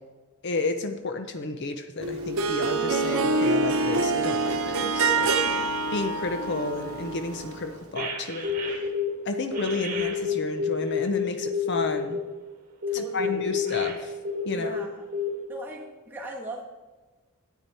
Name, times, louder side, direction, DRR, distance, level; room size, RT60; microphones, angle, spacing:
voice 1, 0.4-5.3 5.9-8.7 9.2-12.2 12.9-14.1 14.4-14.8, left 2 dB, 55° left, 7 dB, 0.7 m, -32 dB
Harp, 2.0-7.8, right 3 dB, 75° right, 0.9 m, -26 dB
voice 2, 5.4-5.9 12.9-13.5 14.5-15.1 15.5-16.7, right 1 dB, 10° right, -2 dB, 1.6 m, -40 dB
sound 1, 8.0-9.1 9.5-12.2 12.8-14.8 15.1-15.3, left 6 dB, 40° right, 1.6 m, -28 dB
10.0 x 9.3 x 4.3 m, 1.3 s
head